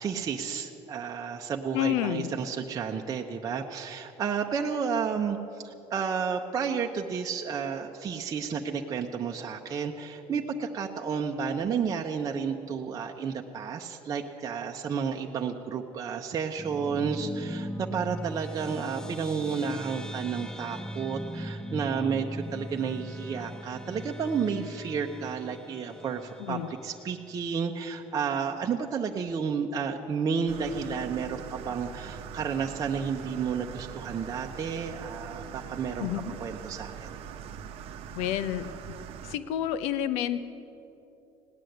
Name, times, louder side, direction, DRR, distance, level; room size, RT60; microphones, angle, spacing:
voice 1, 0.0-36.1 36.4-37.2, right 6 dB, 35° right, 1 dB, 0.8 m, -31 dB
voice 2, 1.7-2.3 26.4-26.7 36.0-36.2 38.1-39.0 39.2-40.4, left 11 dB, 85° left, 12 dB, 0.7 m, -29 dB
sound 1, 16.6-27.4, equal, 5° left, 0.7 m, -39 dB
sound 2, 30.5-39.4, right 8 dB, 65° right, 0.8 m, -42 dB
17.5 x 10.0 x 7.9 m, 3.0 s
cardioid pair, 130°, 11 cm